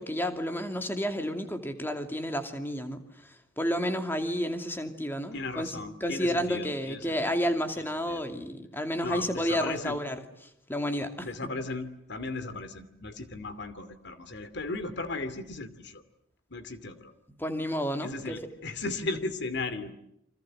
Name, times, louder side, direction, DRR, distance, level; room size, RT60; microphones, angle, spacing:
voice 1, 0.0-10.2 10.7-11.3 17.4-18.4, equal, 10° left, 6 dB, 2.6 m, -31 dB
voice 2, 5.3-7.4 7.8-8.2 9.0-10.0 11.2-16.0 16.5-17.1 18.0-19.9, left 3 dB, 55° left, 12 dB, 2.6 m, -36 dB
29.5 x 25.5 x 7.7 m, 0.77 s
head